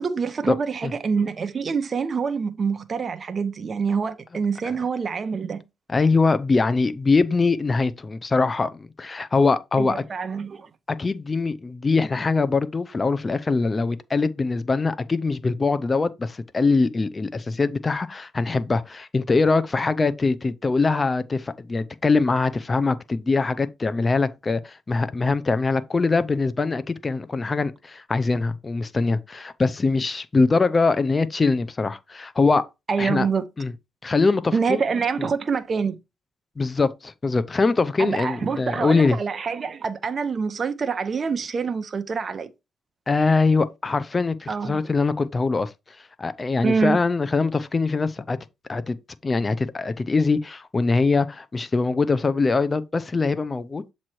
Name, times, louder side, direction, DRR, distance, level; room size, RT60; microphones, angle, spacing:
voice 1, 0.0-5.6 9.8-10.7 32.9-33.5 34.5-36.0 38.0-42.5 44.5-44.8 46.6-47.0, right 5 dB, 40° right, 0.7 m, -26 dB
voice 2, 5.9-10.0 11.0-32.7 33.0-33.3 33.6-33.7 34.0-34.8 35.2-35.3 36.6-39.2 43.1-45.7 46.2-48.4 48.7-49.0 49.2-53.8, left 3 dB, 30° left, 0.6 m, -22 dB
7.3 x 3.2 x 4.3 m
cardioid pair, 90°, 0 cm